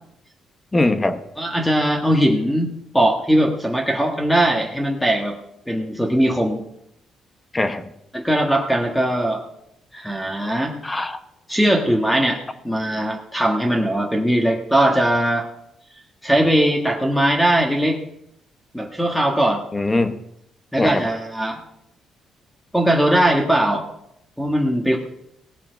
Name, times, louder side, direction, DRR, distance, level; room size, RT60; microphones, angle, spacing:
voice 1, 0.7-1.2 7.5-7.9 10.8-11.2 19.7-20.2 20.8-21.0, left 2 dB, 20° left, 10 dB, 1.2 m, -21 dB
voice 2, 1.4-5.4 5.7-6.6 8.1-9.4 9.9-10.7 11.5-12.4 12.6-15.5 16.2-18.0 18.7-19.6 20.7-21.6 22.7-23.9 24.4-25.0, right 1 dB, 5° left, 2 dB, 1.6 m, -20 dB
18.0 x 7.3 x 5.2 m, 0.78 s
cardioid pair, 90°, 0 cm